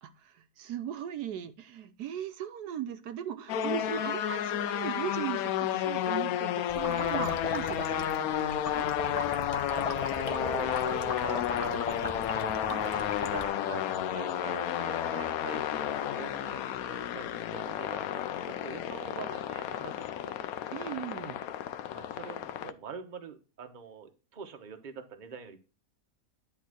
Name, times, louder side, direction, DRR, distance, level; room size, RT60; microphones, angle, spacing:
voice 1, 0.0-8.9 12.7-13.2 20.7-21.4, right 9 dB, 75° right, 10 dB, 1.2 m, -38 dB
sound 1, 3.5-22.7, left 10 dB, 70° left, 1.0 m, -32 dB
sound 2, 6.7-13.5, left 4 dB, 30° left, 0.7 m, -37 dB
voice 2, 9.7-20.6 21.9-25.6, right 6 dB, 35° right, 6 dB, 1.0 m, -44 dB
10.5 x 3.6 x 6.1 m, 0.32 s
omnidirectional pair, 1.8 m